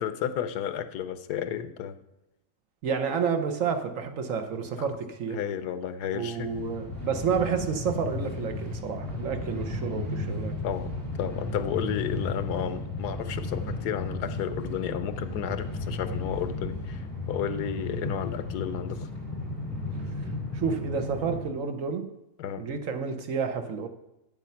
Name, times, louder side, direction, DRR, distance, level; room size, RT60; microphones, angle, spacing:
voice 1, 0.0-2.0 4.8-4.9 5.3-6.5 10.6-19.1 22.4-22.6, left 9 dB, 85° left, 11 dB, 1.3 m, -32 dB
voice 2, 2.8-5.4 6.1-10.5 20.5-22.1 22.6-23.9, right 6 dB, 60° right, 7 dB, 1.2 m, -30 dB
Train, 6.3-21.4, left 2 dB, 35° left, 3.0 m, -34 dB
8.8 x 7.4 x 5.7 m, 0.90 s
omnidirectional pair, 1.7 m